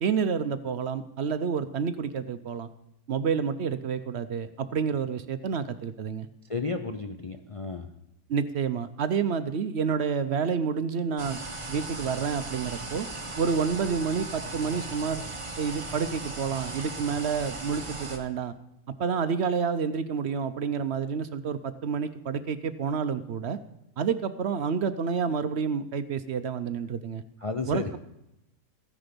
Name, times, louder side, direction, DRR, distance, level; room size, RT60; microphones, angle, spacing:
voice 1, 0.0-2.7 3.1-6.3 8.3-11.4 11.7-13.1 13.4-15.2 15.6-18.5 19.0-23.6 24.0-27.2 27.7-28.0, right 6 dB, 60° right, 12 dB, 0.7 m, -29 dB
voice 2, 6.5-7.9 27.4-28.0, left 3 dB, 60° left, 5 dB, 0.3 m, -32 dB
sound 1, 11.2-18.2, right 2 dB, 20° right, 1.3 m, -37 dB
14.5 x 9.9 x 5.1 m, 0.86 s
omnidirectional pair, 1.6 m